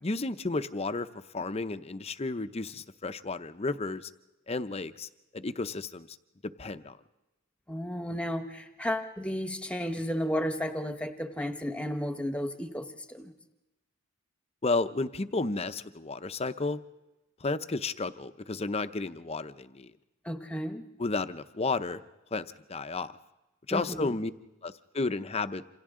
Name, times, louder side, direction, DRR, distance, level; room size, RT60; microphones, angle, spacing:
voice 1, 0.0-1.1 1.3-4.1 4.5-6.2 6.6-7.0 14.6-16.8 17.4-19.9 21.0-22.0 22.3-23.1 23.7-24.3 24.6-25.6, left 3 dB, 30° left, 11 dB, 0.7 m, -32 dB
voice 2, 7.7-13.3 20.2-20.8 23.7-24.1, equal, 5° left, 7 dB, 1.1 m, -33 dB
28.0 x 27.0 x 3.7 m, 1.0 s
head